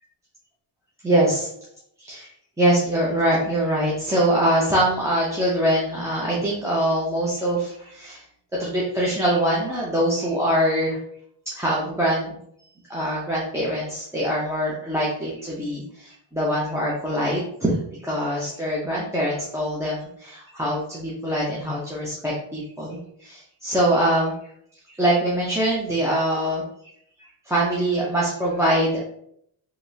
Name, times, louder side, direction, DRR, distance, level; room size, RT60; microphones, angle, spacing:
voice 1, 1.0-1.5 2.0-2.3 2.6-8.2 8.6-11.0 11.6-12.4 12.9-24.3 24.9-26.6 27.5-29.0, right 1 dB, 5° right, -6 dB, 0.5 m, -23 dB
3.5 x 3.0 x 2.6 m, 0.71 s
cardioid pair, 135°, 49 cm